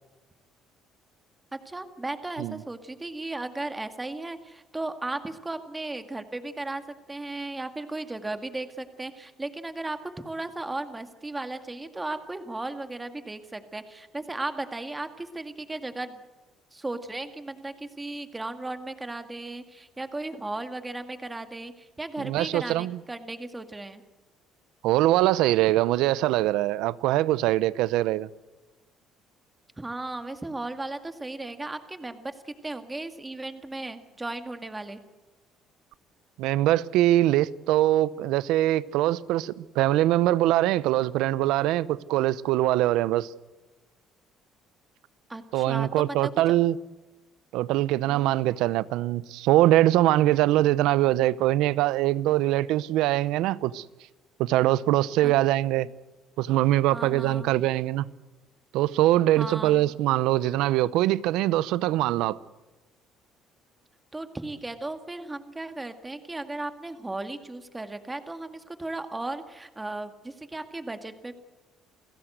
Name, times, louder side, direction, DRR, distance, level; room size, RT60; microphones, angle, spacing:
voice 1, 1.5-16.2 16.7-24.0 29.8-35.0 45.3-46.3 48.1-48.4 55.2-55.3 56.9-57.5 59.4-59.9 64.1-71.3, right 2 dB, 15° right, 2.1 m, -36 dB
voice 2, 22.2-23.0 24.8-28.3 36.4-43.3 45.5-46.8 47.5-53.8 54.4-55.9 56.4-58.1 58.7-62.4, right 15 dB, 80° right, 0.7 m, -23 dB
28.0 x 16.5 x 8.0 m
cardioid pair, 90°, 0 cm